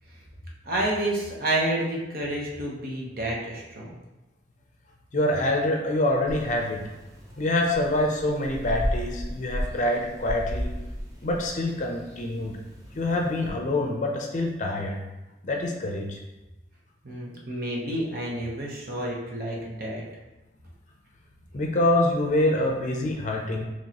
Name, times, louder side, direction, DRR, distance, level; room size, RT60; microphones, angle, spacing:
voice 1, 0.6-4.0 17.0-20.0, right 1 dB, 55° right, -3 dB, 0.9 m, -29 dB
voice 2, 5.1-6.8 7.4-10.7 11.2-12.6 13.0-15.0 15.4-16.2 21.5-23.6, left 1 dB, 40° left, 1 dB, 0.5 m, -25 dB
sound 1, 6.3-13.5, equal, 20° right, 0.7 m, -35 dB
4.6 x 3.0 x 2.9 m, 1.0 s
head